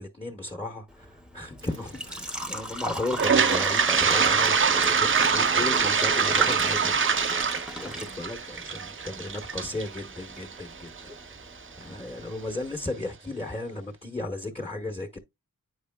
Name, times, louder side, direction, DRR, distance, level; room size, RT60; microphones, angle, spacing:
voice 1, 0.0-7.0 7.8-11.2 11.8-15.2, left 2 dB, 15° left, 1.1 m, -35 dB
Engine / Trickle dribble / Fill (with liquid), 0.9-12.9, equal, ahead, 0.9 m, -37 dB
Toilet flush, 3.1-11.0, right 6 dB, 35° right, 0.5 m, -24 dB
8.6 x 4.9 x 2.3 m
cardioid pair, 65°, 36 cm